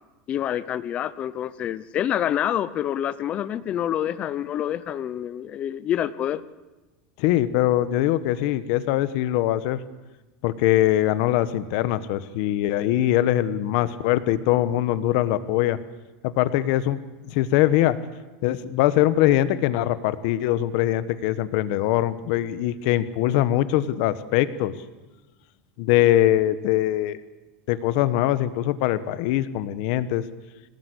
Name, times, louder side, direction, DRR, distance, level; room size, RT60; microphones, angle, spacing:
voice 1, 0.3-6.4, left 10 dB, 25° left, 0.7 m, -27 dB
voice 2, 7.2-9.8 10.4-15.8 16.2-18.0 18.4-24.8 25.8-27.2 27.7-30.2, left 13 dB, 50° left, 1.3 m, -22 dB
26.0 x 18.0 x 8.3 m
supercardioid pair, 175°, 5 cm